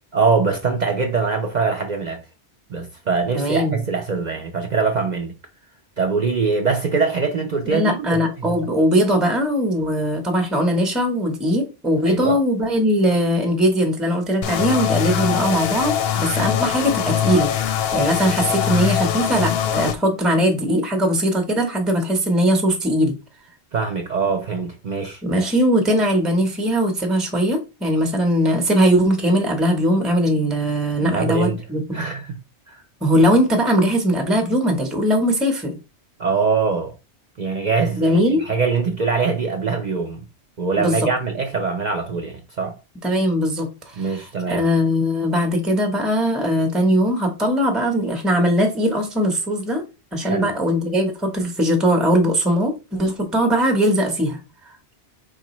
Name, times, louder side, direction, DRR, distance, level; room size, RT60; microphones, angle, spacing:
voice 1, 0.1-2.2 2.7-5.3 6.0-8.6 12.0-12.4 23.7-25.2 31.0-31.6 31.9-32.4 32.7-32.8 36.2-36.9 37.4-40.3 40.6-42.8 44.0-44.7 50.2-50.5, right 4 dB, 50° right, 0.6 m, -23 dB
voice 2, 3.3-3.8 7.7-17.5 17.9-23.2 25.2-32.0 33.0-35.8 38.0-38.4 40.8-41.0 43.0-44.1 44.5-49.8 50.1-54.4, equal, ahead, 0.8 m, -20 dB
sound 1, 14.4-19.9, left 9 dB, 65° left, 0.7 m, -22 dB
4.8 x 3.7 x 3.0 m
omnidirectional pair, 1.2 m